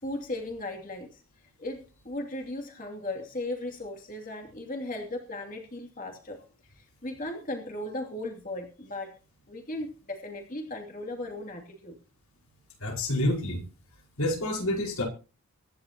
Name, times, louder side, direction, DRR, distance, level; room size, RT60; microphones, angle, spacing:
voice 1, 0.0-1.2 1.6-6.4 6.7-9.1 9.5-12.0, left 1 dB, 40° left, 1 dB, 2.7 m, -37 dB
voice 2, 12.8-13.6 14.2-15.0, left 1 dB, 80° left, 2 dB, 5.2 m, -28 dB
24.0 x 11.0 x 2.9 m, 0.34 s
head